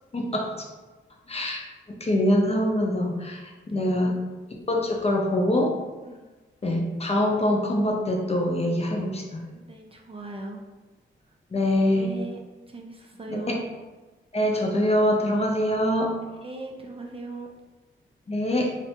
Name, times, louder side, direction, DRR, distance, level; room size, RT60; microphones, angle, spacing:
voice 1, 0.1-0.7 1.3-1.6 2.0-4.2 4.7-5.8 6.6-9.4 11.5-12.1 13.3-13.6 14.3-16.1 18.3-18.7, left 1 dB, 30° left, 0 dB, 0.5 m, -24 dB
voice 2, 9.5-10.6 11.9-12.4 12.7-13.6 16.4-17.5, right 3 dB, 25° right, 0 dB, 0.4 m, -39 dB
2.5 x 2.1 x 2.8 m, 1.2 s
cardioid pair, 55°, 21 cm